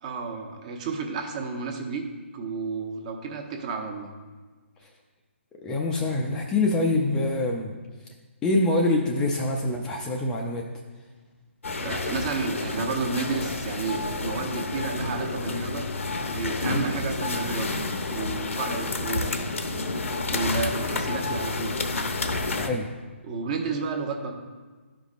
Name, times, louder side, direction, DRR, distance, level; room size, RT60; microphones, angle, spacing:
voice 1, 0.0-2.0 2.3-4.1 11.8-15.8 16.3-17.7 18.1-19.4 20.3-21.8 23.2-24.3, right 4 dB, 30° right, 4 dB, 0.9 m, -31 dB
voice 2, 5.6-7.7 8.4-10.6 22.6-22.9, left 2 dB, 10° left, 0 dB, 0.4 m, -25 dB
sound 1, 11.6-22.7, left 3 dB, 80° left, 0.8 m, -29 dB
12.0 x 5.1 x 2.5 m, 1.4 s
hypercardioid pair, 155°, 7 cm